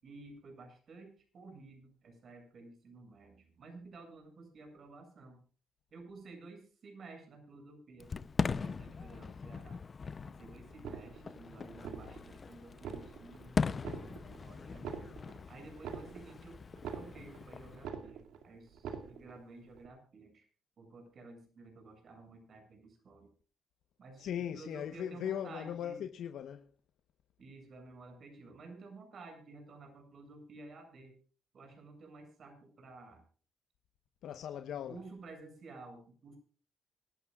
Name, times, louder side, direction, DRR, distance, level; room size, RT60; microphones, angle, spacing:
voice 1, 0.0-5.4 5.9-8.1 8.4-9.8 10.2-15.0 15.5-16.6 16.9-20.5 20.8-23.3 24.0-26.0 27.4-31.1 31.5-33.2 34.9-36.4, right 3 dB, 55° right, 7.5 m, -53 dB
Fireworks, 8.0-17.9, left 5 dB, 40° left, 0.7 m, -40 dB
sound 1, 10.7-11.4 11.8-12.4 12.7-13.4 13.8-14.4 14.7-17.4 17.7-18.4 18.7-19.4 19.7-19.9, right 7 dB, 85° right, 2.5 m, -44 dB
voice 2, 24.2-26.7 34.2-35.0, left 9 dB, 75° left, 1.1 m, -39 dB
25.0 x 13.5 x 2.5 m
cardioid pair, 90°, 0 cm